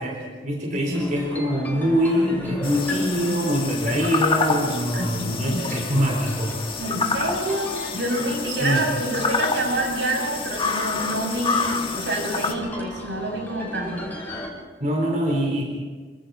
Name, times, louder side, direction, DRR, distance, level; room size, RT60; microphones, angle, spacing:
voice 1, 0.0-6.6 8.5-8.8 14.8-15.6, equal, 45° right, -1 dB, 4.2 m, -24 dB
voice 2, 0.7-1.1 4.9-5.7 6.8-14.0, right 1 dB, 70° right, 1 dB, 6.7 m, -27 dB
sound 1, 0.9-14.5, left 1 dB, 10° left, 5.6 m, -39 dB
sound 2, 2.6-12.5, left 4 dB, 30° left, 1.8 m, -28 dB
28.5 x 25.5 x 4.3 m, 1.4 s
head